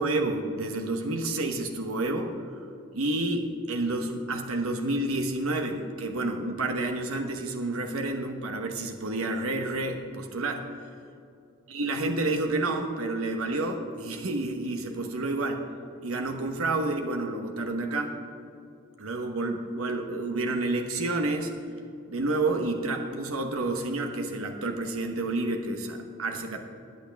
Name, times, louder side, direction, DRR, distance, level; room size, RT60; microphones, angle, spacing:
voice 1, 0.0-2.7 2.9-10.6 11.7-15.6 16.0-18.1 19.0-21.5 22.1-26.6, right 2 dB, 85° right, 4 dB, 1.0 m, -29 dB
20.5 x 8.3 x 3.4 m, 2.6 s
head